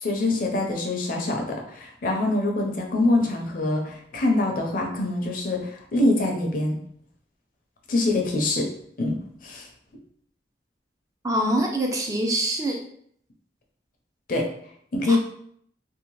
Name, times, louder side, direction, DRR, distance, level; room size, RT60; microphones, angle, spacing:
voice 1, 0.0-6.8 7.9-8.7 9.0-9.2 9.4-9.7 14.3-14.5 14.9-15.2, left 2 dB, 50° left, 1 dB, 0.5 m, -24 dB
voice 2, 11.2-12.8 15.0-15.2, right 1 dB, 20° right, 1 dB, 0.3 m, -24 dB
2.7 x 2.1 x 2.9 m, 0.65 s
head